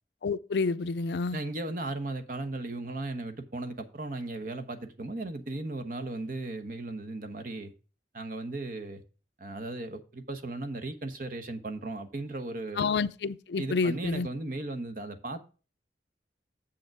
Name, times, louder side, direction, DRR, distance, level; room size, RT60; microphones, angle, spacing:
voice 1, 0.2-1.4 12.8-14.3, left 4 dB, 75° left, 0.4 m, -29 dB
voice 2, 1.3-7.7 8.1-9.0 9.4-12.9 13.6-15.4, right 2 dB, 50° right, 1.0 m, -36 dB
7.5 x 6.6 x 4.7 m
head